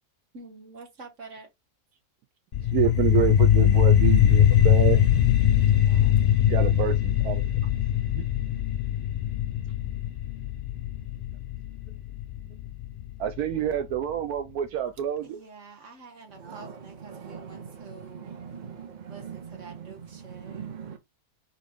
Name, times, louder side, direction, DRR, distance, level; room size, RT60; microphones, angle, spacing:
voice 1, 0.3-1.5 5.8-6.2 15.2-18.4 19.1-20.7, right 4 dB, 55° right, 1.5 m, -47 dB
sound 1, 2.5-13.5, left 10 dB, 55° left, 0.6 m, -22 dB
voice 2, 2.7-5.0 6.5-7.5 8.1-8.2 13.2-15.4, right 10 dB, 75° right, 1.0 m, -27 dB
voice 3, 16.3-21.0, right 7 dB, 35° right, 0.8 m, -41 dB
4.1 x 3.1 x 3.4 m
omnidirectional pair, 1.6 m